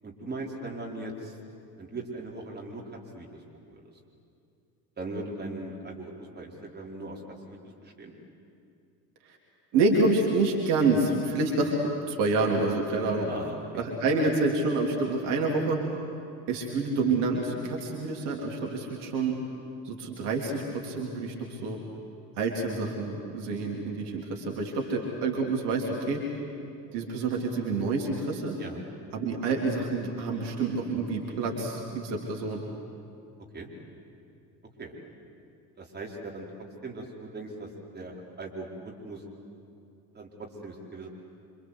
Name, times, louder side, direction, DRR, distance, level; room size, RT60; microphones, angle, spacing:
voice 1, 0.0-1.4 1.8-3.8 5.0-7.2 7.5-8.1 13.3-13.8 28.6-28.8 33.5-33.7 34.8-34.9 35.8-36.5 36.8-39.2 40.1-41.1, right 2 dB, 20° right, -1 dB, 4.8 m, -39 dB
voice 2, 9.7-11.8 12.1-13.3 13.7-15.8 16.5-19.4 19.8-21.8 22.4-26.2 26.9-28.6 29.1-32.6, right 3 dB, 55° right, 0 dB, 3.6 m, -28 dB
27.0 x 26.5 x 8.3 m, 2.6 s
figure-of-eight pair, 65°, 50 cm